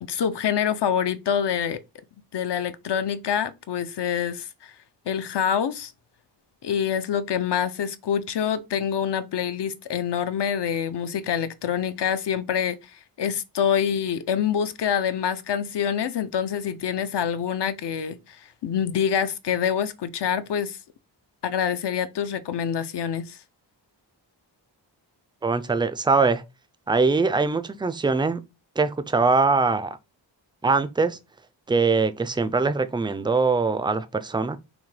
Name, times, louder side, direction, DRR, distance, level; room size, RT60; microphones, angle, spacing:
voice 1, 0.0-1.8 2.3-4.7 5.1-5.9 6.6-20.8 21.4-23.4, left 8 dB, 70° left, 0.6 m, -26 dB
voice 2, 25.4-26.4 26.9-28.4 28.8-30.0 30.6-31.2 31.7-34.6, right 4 dB, 10° right, 0.3 m, -22 dB
5.9 x 2.2 x 3.3 m
wide cardioid pair, 110°, 44 cm